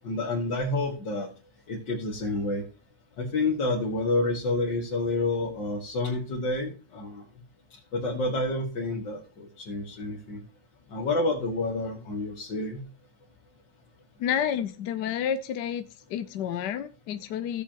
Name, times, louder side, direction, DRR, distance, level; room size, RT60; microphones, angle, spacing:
voice 1, 0.0-1.3 1.7-2.6 3.2-7.2 7.9-10.4 10.9-12.8, left 2 dB, 90° left, 2.7 m, -29 dB
voice 2, 14.2-15.9 16.1-17.6, left 9 dB, 75° left, 1.2 m, -30 dB
16.5 x 7.0 x 3.0 m
omnidirectional pair, 1.9 m